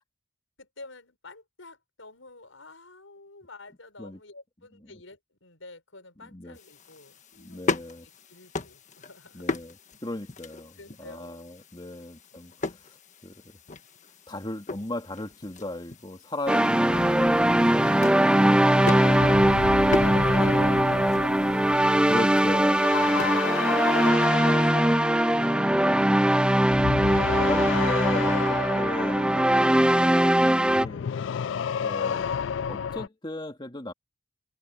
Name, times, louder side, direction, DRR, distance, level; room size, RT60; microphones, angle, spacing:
voice 1, 0.6-9.6 10.8-11.5 12.3-12.6 24.5-26.3, left 3 dB, 85° left, 5.5 m, -50 dB
sound 1, 6.5-24.1, left 3 dB, 40° left, 1.4 m, -38 dB
voice 2, 7.4-8.1 9.3-9.7 10.0-12.5 13.2-13.3 14.3-18.1 22.1-24.5 25.7-26.2 26.8-27.1 27.4-31.1 31.8-32.3 32.7-33.9, left 1 dB, 25° left, 2.4 m, -37 dB
sound 2, 16.5-30.9, right 1 dB, 5° right, 0.4 m, -21 dB
sound 3, 16.9-26.3 26.6-33.1, left 7 dB, 65° left, 0.3 m, -32 dB
head